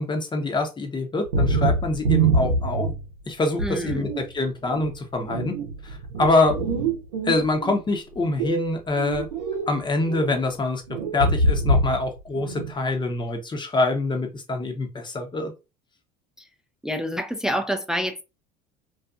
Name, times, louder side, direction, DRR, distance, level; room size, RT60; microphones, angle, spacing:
voice 1, 0.0-2.9 3.3-5.5 5.8-6.6 7.2-9.3 9.7-10.8 11.1-15.5, left 2 dB, 20° left, 0.8 m, -25 dB
sound 1, 1.2-3.1 3.6-4.2 4.6-7.8 8.2-9.7 10.0-10.3 10.9-12.1 12.3-12.7, right 2 dB, 90° right, 0.7 m, -24 dB
voice 2, 3.6-4.1 16.8-18.2, equal, 5° right, 0.4 m, -27 dB
2.7 x 2.4 x 2.4 m
hypercardioid pair, 75°, 21 cm